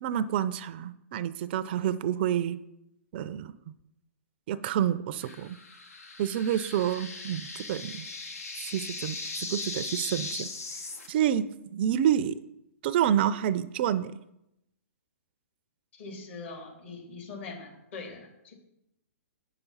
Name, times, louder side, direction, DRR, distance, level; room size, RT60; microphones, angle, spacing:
voice 1, 0.0-2.6 3.1-3.5 4.5-5.6 6.2-8.1 8.6-10.5 11.1-12.4 12.8-14.2, right 10 dB, 45° right, 15 dB, 0.4 m, -28 dB
sound 1, 5.2-11.1, left 3 dB, 90° left, 1.5 m, -39 dB
voice 2, 15.9-18.5, left 4 dB, 55° left, 2 dB, 2.6 m, -42 dB
8.2 x 5.9 x 5.5 m, 0.85 s
hypercardioid pair, 140°, 8 cm